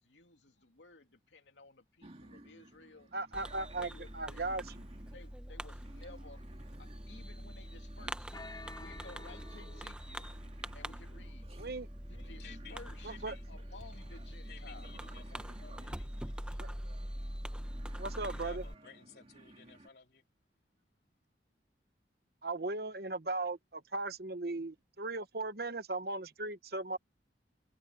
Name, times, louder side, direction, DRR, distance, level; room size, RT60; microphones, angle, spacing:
voice 1, 0.0-3.1 3.8-4.6 5.1-6.4 6.8-8.4 8.8-10.3 10.7-11.5 12.1-14.9 15.8-16.8, left 3 dB, 80° left, 2.5 m, -56 dB
sound 1, 2.0-19.9, right 1 dB, 35° right, 2.6 m, -57 dB
voice 2, 3.1-4.8 11.6-11.9 13.0-13.4 16.6-16.7 18.0-18.6 22.4-27.0, right 2 dB, 55° right, 1.1 m, -37 dB
Fireworks, 3.3-18.7, equal, 5° right, 0.8 m, -44 dB
sound 2, 8.3-10.3, left 3 dB, 20° left, 3.3 m, -50 dB
voice 3, 12.4-12.8 13.1-13.4 14.5-15.8 18.2-20.2, left 6 dB, 60° left, 3.8 m, -55 dB
head